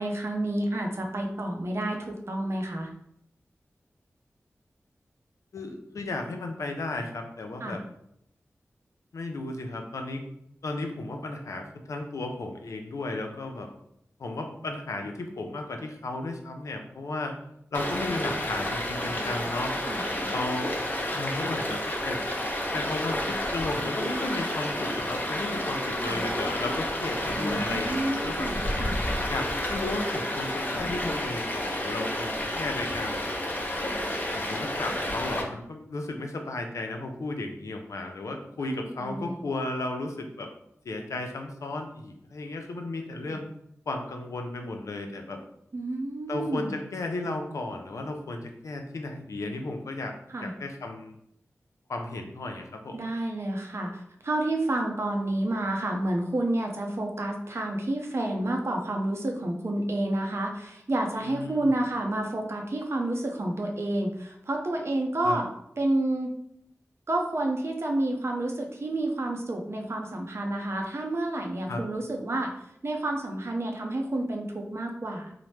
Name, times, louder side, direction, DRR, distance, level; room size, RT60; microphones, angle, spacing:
voice 1, 0.0-2.9 7.6-7.8 19.9-20.0 26.0-26.2 27.3-29.0 38.7-39.4 45.7-46.7 50.3-50.5 52.9-65.5 65.8-66.3 67.1-72.5 72.8-75.3, right 1 dB, 55° right, 2 dB, 0.6 m, -29 dB
voice 2, 5.5-7.8 9.1-10.2 10.6-13.7 14.2-17.4 17.7-19.8 20.3-20.8 21.1-22.2 22.7-28.5 29.3-33.3 34.3-40.5 40.8-43.5 43.9-45.4 46.3-51.2 51.9-53.0 61.2-61.7 65.2-65.4 71.7-71.9, left 2 dB, 80° left, 4 dB, 0.4 m, -34 dB
Stream, 17.7-35.4, left 1 dB, 35° left, 0.6 m, -30 dB
2.9 x 2.0 x 3.1 m, 0.74 s
cardioid pair, 40°, 5 cm